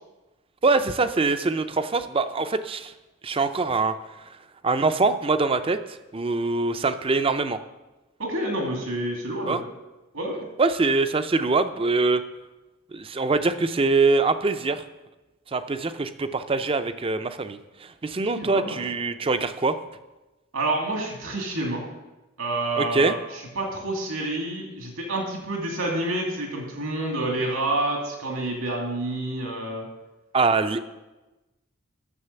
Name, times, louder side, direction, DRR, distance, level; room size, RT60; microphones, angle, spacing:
voice 1, 0.6-2.9 3.2-4.0 4.6-5.8 6.1-7.6 9.5-9.6 10.6-12.2 12.9-14.8 15.5-17.6 18.0-19.8 22.8-23.2 30.3-30.8, right 3 dB, 25° right, 11 dB, 0.5 m, -23 dB
voice 2, 8.2-9.6 10.1-10.4 18.4-18.8 20.5-21.8 22.4-29.9, right 1 dB, 80° right, 0 dB, 2.6 m, -28 dB
9.8 x 6.7 x 6.9 m, 1.1 s
head